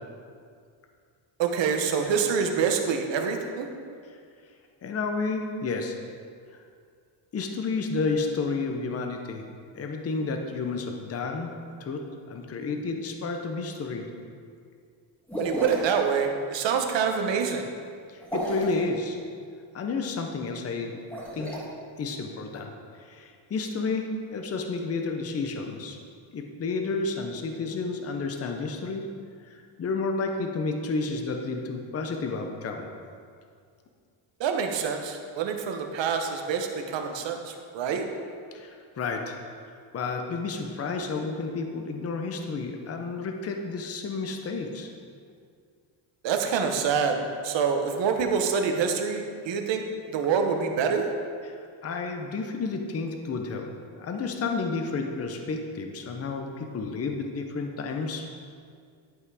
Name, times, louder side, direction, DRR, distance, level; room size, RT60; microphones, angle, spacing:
voice 1, 1.4-3.7 15.4-17.7 34.4-38.1 46.2-51.1, right 6 dB, 60° right, 4 dB, 1.1 m, -26 dB
voice 2, 4.8-6.0 7.3-9.4 9.7-11.5 11.8-14.1 18.1-19.2 19.7-21.0 21.3-21.6 22.0-26.0 26.3-29.1 29.5-32.9 38.5-39.4 39.9-44.9 51.4-53.7 54.0-58.4, left 4 dB, 30° left, 4 dB, 0.7 m, -31 dB
sound 1, 15.3-16.0 18.2-18.8 21.0-21.6, equal, 5° left, 1.8 m, -31 dB
11.0 x 5.6 x 4.8 m, 2.2 s
cardioid pair, 150°, 49 cm